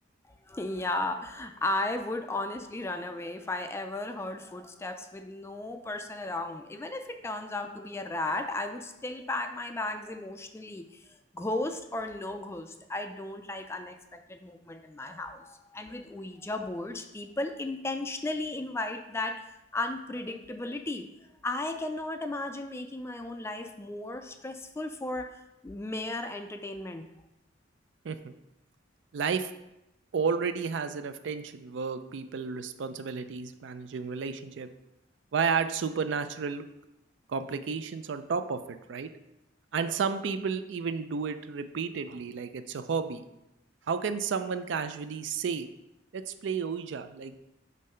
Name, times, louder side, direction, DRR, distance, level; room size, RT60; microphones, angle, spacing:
voice 1, 0.5-21.1 21.4-25.3 25.6-27.0, left 2 dB, 15° left, 7 dB, 0.3 m, -35 dB
voice 2, 29.1-29.5 30.1-34.7 35.3-36.6 37.3-38.6 38.9-39.1 39.7-43.2 43.9-45.7 46.1-47.4, right 5 dB, 65° right, 10 dB, 0.4 m, -32 dB
5.4 x 3.2 x 5.5 m, 0.91 s
head